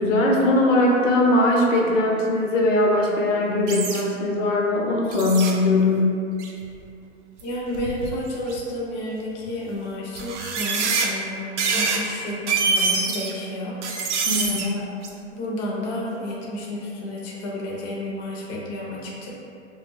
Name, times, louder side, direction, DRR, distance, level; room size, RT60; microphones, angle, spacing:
voice 1, 0.0-6.2 14.3-14.6, left 2 dB, 75° left, -2 dB, 0.6 m, -20 dB
sound 1, 3.7-4.0 5.1-5.5 6.4-6.6 7.4-7.5 7.7-8.6 9.5-9.6 10.2-11.1 11.6-12.0 12.3-13.3 13.8-14.6 15.0-15.1, right 4 dB, 65° right, 0.5 m, -25 dB
voice 2, 7.4-13.8 14.4-14.8 15.3-19.3, left 1 dB, 35° left, -4 dB, 0.5 m, -31 dB
2.3 x 2.2 x 3.0 m, 2.5 s
hypercardioid pair, 130°, 38 cm